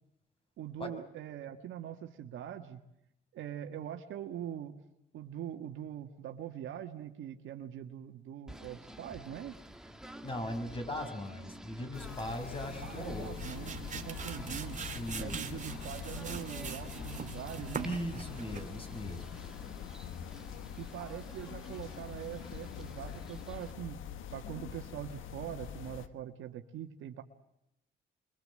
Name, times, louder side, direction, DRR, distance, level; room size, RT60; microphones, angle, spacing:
voice 1, 0.6-2.8 3.3-4.8 5.1-9.6 12.8-14.8 15.2-17.9 20.8-24.0 24.3-27.2, right 10 dB, 80° right, 4 dB, 1.6 m, -43 dB
Singing / Bird, 8.5-23.7, right 1 dB, 5° right, 1.7 m, -50 dB
voice 2, 10.2-13.3 14.9-15.4 17.8-19.2, equal, 25° left, 6 dB, 6.2 m, -39 dB
sound 1, 11.9-26.1, left 9 dB, 85° left, 1.4 m, -44 dB
sound 2, 13.0-18.8, right 6 dB, 40° right, 2.2 m, -42 dB
28.0 x 23.5 x 7.7 m, 0.85 s
cardioid pair, 90°, 20 cm